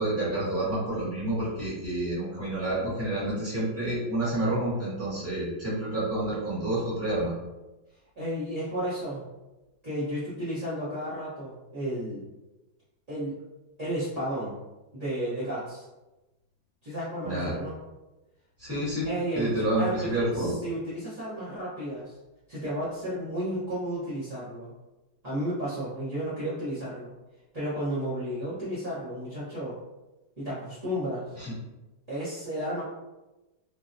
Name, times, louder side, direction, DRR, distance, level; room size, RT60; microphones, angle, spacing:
voice 1, 0.0-7.3 17.2-17.5 18.6-19.1 19.3-20.5 31.4-31.5, right 1 dB, 10° right, -9 dB, 0.8 m, -29 dB
voice 2, 8.2-9.2 9.8-12.2 13.1-13.4 13.8-14.5 14.9-15.8 16.8-17.7 19.0-22.2 22.5-24.7 25.2-27.1 27.5-29.7 30.4-31.3 32.1-32.8, equal, 40° right, -13 dB, 0.6 m, -33 dB
3.7 x 2.0 x 2.6 m, 1.0 s
omnidirectional pair, 2.2 m